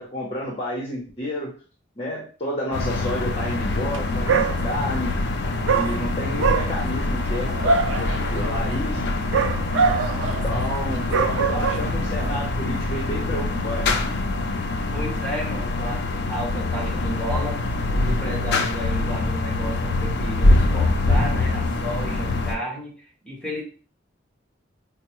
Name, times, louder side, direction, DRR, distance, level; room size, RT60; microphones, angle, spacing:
voice 1, 0.0-1.5 2.0-5.1 5.6-9.0 10.2-14.0, left 1 dB, 30° left, -3 dB, 0.7 m, -30 dB
sound 1, 2.7-22.6, left 2 dB, 60° left, 0.4 m, -24 dB
Dog, 3.8-4.0 4.3-5.0 5.7-12.3, right 5 dB, 85° right, 0.4 m, -25 dB
voice 2, 14.9-17.6 17.9-23.6, equal, 5° left, -3 dB, 1.0 m, -32 dB
4.4 x 2.0 x 3.0 m, 0.39 s
head